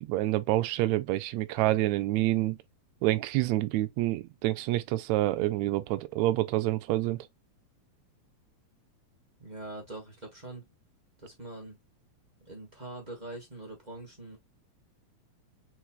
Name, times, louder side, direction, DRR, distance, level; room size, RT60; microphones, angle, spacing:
voice 1, 0.0-2.6 3.0-7.3, right 17 dB, 80° right, 1.7 m, -27 dB
voice 2, 9.4-10.7 11.2-11.8 12.4-14.4, right 2 dB, 20° right, 1.1 m, -43 dB
4.6 x 4.4 x 2.2 m
omnidirectional pair, 3.6 m